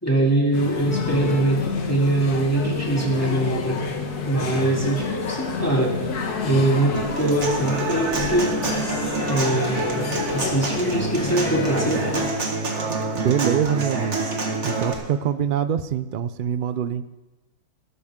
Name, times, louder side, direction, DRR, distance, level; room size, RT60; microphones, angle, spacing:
voice 1, 0.0-3.8 4.3-6.0 6.4-8.6 9.3-12.1, right 2 dB, 10° left, -3 dB, 2.5 m, -23 dB
sound 1, 0.5-12.3, left 5 dB, 90° left, 1.8 m, -29 dB
Human voice / Acoustic guitar, 6.9-14.9, right 2 dB, 50° right, 2.0 m, -27 dB
voice 2, 13.2-14.3 14.6-17.1, right 8 dB, 75° right, 13 dB, 0.4 m, -24 dB
19.0 x 12.5 x 3.7 m, 1.1 s
omnidirectional pair, 1.6 m